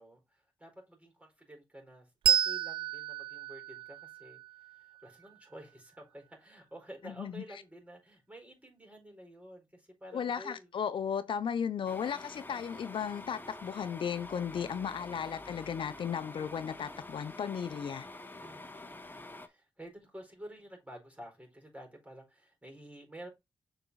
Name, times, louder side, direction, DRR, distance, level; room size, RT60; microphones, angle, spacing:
voice 1, 0.0-4.4 4.7-10.7 14.6-15.3 18.4-23.3, right 1 dB, 15° right, 4.5 m, -51 dB
Bell, 2.2-5.3, right 9 dB, 85° right, 0.6 m, -32 dB
voice 2, 7.0-7.4 10.1-18.1, left 7 dB, 70° left, 0.7 m, -35 dB
sound 1, 11.9-19.5, left 2 dB, 25° left, 1.2 m, -47 dB
6.8 x 4.4 x 4.0 m
supercardioid pair, 50°, 9 cm